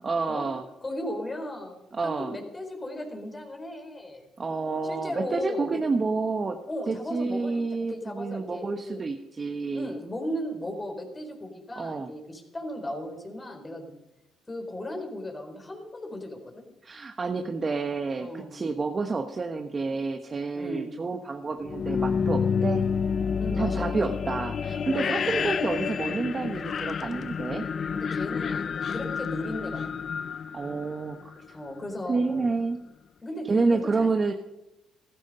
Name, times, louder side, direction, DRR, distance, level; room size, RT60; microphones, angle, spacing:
voice 1, 0.0-0.7 1.9-2.3 4.4-6.6 6.9-9.9 11.8-12.1 16.8-22.8 23.6-27.6 30.5-31.2 31.5-31.6 32.1-32.8 33.4-34.3, right 4 dB, 35° right, 5 dB, 1.2 m, -29 dB
voice 2, 0.8-1.8 2.2-4.2 4.8-5.8 6.7-7.6 7.9-9.0 9.7-13.9 14.5-16.4 18.2-18.5 20.5-20.9 23.4-24.1 24.9-25.8 27.9-30.0 31.5-32.5 33.2-34.1, left 1 dB, 25° left, 3 dB, 4.4 m, -36 dB
sound 1, 21.6-31.5, left 6 dB, 50° left, 0.6 m, -29 dB
15.0 x 14.0 x 5.5 m, 0.91 s
supercardioid pair, 75°, 0 cm